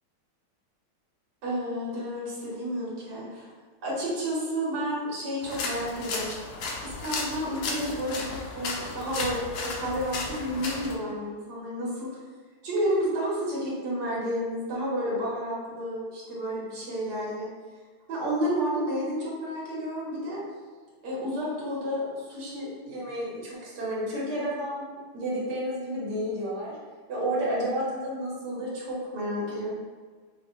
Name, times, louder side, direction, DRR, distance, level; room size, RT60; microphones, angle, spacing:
voice 1, 1.4-3.5 3.8-6.4 6.8-12.1 12.6-17.5 18.1-20.4 21.0-24.8 25.1-26.8 27.1-29.7, equal, 55° right, -6 dB, 1.7 m, -31 dB
sound 1, 5.4-10.9, left 3 dB, 70° left, 1.0 m, -34 dB
5.2 x 2.3 x 4.4 m, 1.5 s
omnidirectional pair, 2.4 m